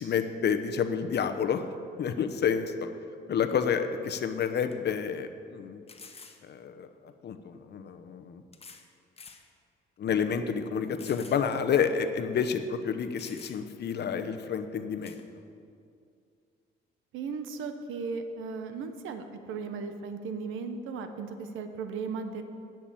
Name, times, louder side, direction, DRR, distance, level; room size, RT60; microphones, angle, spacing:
voice 1, 0.0-1.7 2.0-2.9 3.3-5.8 6.4-6.9 7.2-8.4 10.0-15.3, left 7 dB, 55° left, 8 dB, 0.8 m, -29 dB
sound 1, 4.7-4.8 5.9-6.4 7.5-7.6 8.5-8.9 9.2-9.4 10.0-10.1 11.0-11.4 11.8-11.9 12.8-12.9 13.2-13.8 15.0-15.2, left 4 dB, 30° left, 1.0 m, -49 dB
voice 2, 17.1-22.4, right 5 dB, 85° right, 8 dB, 1.0 m, -36 dB
10.0 x 6.0 x 8.6 m, 2.4 s
cardioid pair, 90°, 20 cm